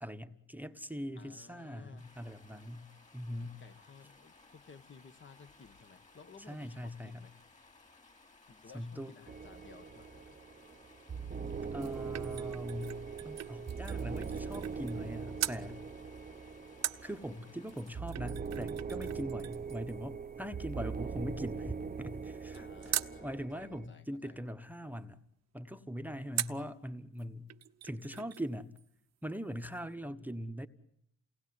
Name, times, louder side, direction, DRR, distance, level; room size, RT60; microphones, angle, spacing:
voice 1, 0.0-2.9 3.1-3.6 6.5-7.2 8.7-9.1 11.7-13.0 13.2-15.8 17.0-25.2 25.5-27.5 27.8-28.7 29.2-30.7, equal, 5° right, 7 dB, 1.2 m, -41 dB
voice 2, 1.1-2.1 3.4-7.3 8.5-10.4 22.5-24.4, left 5 dB, 40° left, 10 dB, 1.5 m, -56 dB
Stream, 2.0-18.0, left 3 dB, 25° left, 3.2 m, -61 dB
sound 1, 9.3-23.9, right 5 dB, 30° right, 1.1 m, -41 dB
sound 2, 11.5-15.1 15.4-15.6 16.8-23.2 26.4-26.7 27.2-27.3 27.5-28.5 28.8-28.9, right 11 dB, 60° right, 1.0 m, -42 dB
28.5 x 19.0 x 9.7 m, 0.75 s
cardioid pair, 90°, 30 cm